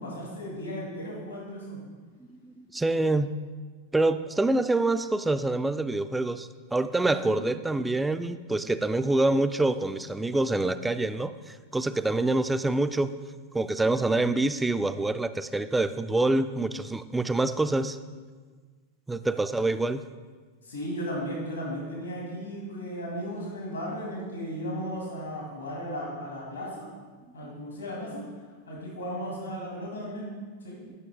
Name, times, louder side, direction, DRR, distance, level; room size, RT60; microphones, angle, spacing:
voice 1, 0.0-1.8 7.2-7.3 19.5-19.6 20.6-26.9 27.3-28.2 28.7-30.3 30.6-30.8, equal, 85° left, -3 dB, 2.2 m, -35 dB
voice 2, 2.4-3.4 3.9-13.1 13.5-18.0 19.1-20.0 27.4-27.5, right 2 dB, 10° right, 11 dB, 0.3 m, -26 dB
10.0 x 5.9 x 3.6 m, 1.5 s
hypercardioid pair, 95°, 0 cm